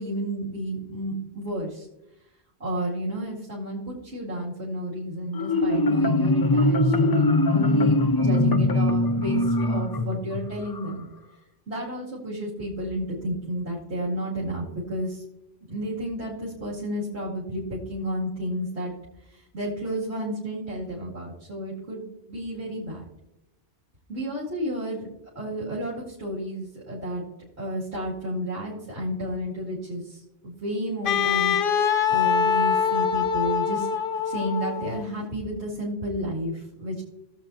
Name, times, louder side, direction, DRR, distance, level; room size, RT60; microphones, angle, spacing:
voice 1, 0.0-1.9 2.6-11.1 11.7-15.2 15.7-18.9 19.3-22.0 22.3-23.0 24.1-25.1 25.3-27.2 27.6-33.9 34.2-37.0, equal, 85° right, -7 dB, 2.6 m, -31 dB
Marimba xylophone, 5.3-10.9, left 2 dB, 35° left, 0.4 m, -22 dB
Wind instrument woodwind instrument, 31.1-35.1, left 7 dB, 60° left, 0.8 m, -24 dB
17.5 x 7.2 x 2.7 m, 0.90 s
omnidirectional pair, 1.1 m